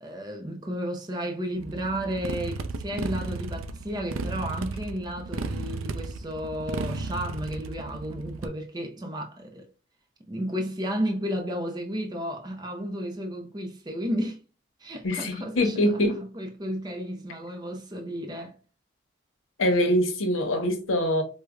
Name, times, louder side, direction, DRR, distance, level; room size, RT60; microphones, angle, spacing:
voice 1, 0.0-9.7 10.3-14.4 14.8-18.6, equal, 20° right, 0.4 m, -33 dB
Motorcycle, 1.6-8.5, right 3 dB, 90° right, 0.4 m, -34 dB
voice 2, 15.0-16.2 19.6-21.2, left 1 dB, 80° left, 0.8 m, -24 dB
4.7 x 2.1 x 2.3 m
head